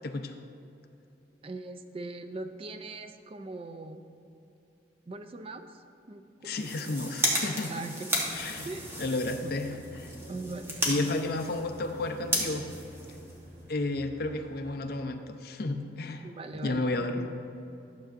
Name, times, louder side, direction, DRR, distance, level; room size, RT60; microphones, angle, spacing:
voice 1, 0.0-0.3 6.4-7.7 8.3-8.7 9.0-9.7 10.0-10.1 10.9-12.6 13.7-16.3 16.6-17.3, left 2 dB, 55° left, 6 dB, 0.5 m, -32 dB
voice 2, 1.4-4.0 5.1-6.6 7.7-8.1 8.6-8.9 9.4-9.5 10.3-11.1 16.2-17.3, right 2 dB, 30° right, 8 dB, 0.4 m, -41 dB
sound 1, 6.4-13.7, equal, 15° right, 1.0 m, -34 dB
sound 2, 8.2-14.9, equal, 65° right, 1.1 m, -50 dB
11.5 x 6.9 x 2.5 m, 2.8 s
head